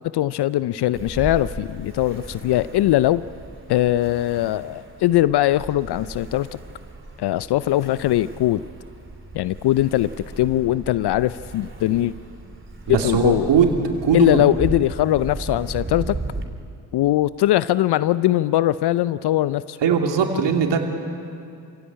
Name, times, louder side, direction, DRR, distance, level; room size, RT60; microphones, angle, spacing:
voice 1, 0.1-3.2 3.7-6.5 7.2-8.6 9.3-10.1 10.4-12.1 12.9-13.5 14.1-16.2 16.9-19.8, left 14 dB, 55° left, 16 dB, 0.6 m, -20 dB
Ocean, 0.9-16.4, right 2 dB, 25° right, 3.2 m, -36 dB
voice 2, 12.9-13.7 14.0-14.5 19.8-20.8, right 7 dB, 60° right, 3 dB, 3.1 m, -19 dB
27.5 x 16.5 x 8.7 m, 2.5 s
hypercardioid pair, 50°, 49 cm